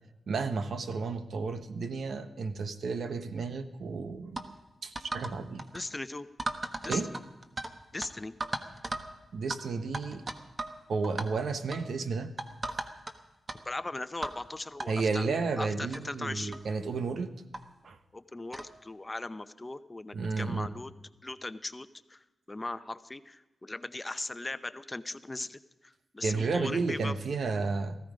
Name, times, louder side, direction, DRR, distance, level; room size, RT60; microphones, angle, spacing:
voice 1, 0.3-4.4 4.8-5.6 6.9-7.1 9.3-10.2 10.9-12.3 14.9-17.3 17.8-18.0 20.1-20.7 26.2-28.0, right 4 dB, 75° right, 9 dB, 1.1 m, -32 dB
sound 1, 4.4-4.5 5.0-5.3 5.6-5.8 6.4-7.7 8.0-8.1 8.4-9.1 9.5-9.6 9.9-10.8 11.0-11.3 11.7-11.9 12.4-13.1 13.5-13.6 14.2-14.4 14.8-14.9 15.6-15.7 15.9-16.0 16.5-16.7 17.5-17.6 18.5-18.7, right 2 dB, 30° right, 1.4 m, -36 dB
voice 2, 5.7-6.3 6.8-7.2 7.9-8.3 13.7-15.3 15.6-16.6 18.1-20.9 21.2-27.2, left 2 dB, 25° left, 12 dB, 0.7 m, -39 dB
18.0 x 15.0 x 5.2 m, 1.0 s
cardioid pair, 80°, 0 cm